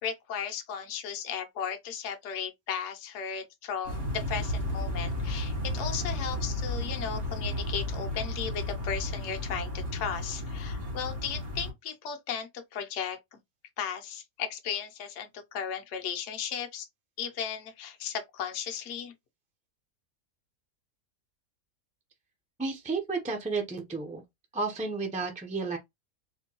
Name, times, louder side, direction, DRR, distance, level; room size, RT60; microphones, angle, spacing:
voice 1, 0.0-13.2 13.8-16.9 17.2-19.1, left 7 dB, 60° left, 1.0 m, -35 dB
sound 1, 3.9-11.7, left 1 dB, 75° right, 2.4 m, -33 dB
voice 2, 22.6-24.2 24.5-25.8, right 4 dB, 10° right, 0.4 m, -32 dB
4.3 x 2.2 x 2.9 m
omnidirectional pair, 1.5 m